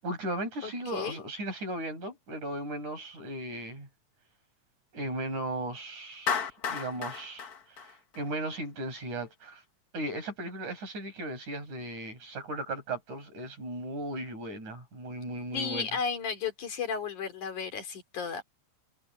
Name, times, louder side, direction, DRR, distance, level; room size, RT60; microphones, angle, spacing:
voice 1, 0.0-3.9 4.9-7.5 8.1-9.6 9.9-15.9, right 1 dB, 80° right, 9.0 m, -36 dB
voice 2, 0.6-1.2 15.5-18.4, left 6 dB, 90° left, 4.8 m, -34 dB
Clapping, 6.3-8.6, left 6 dB, 55° left, 1.1 m, -33 dB
omnidirectional pair, 3.4 m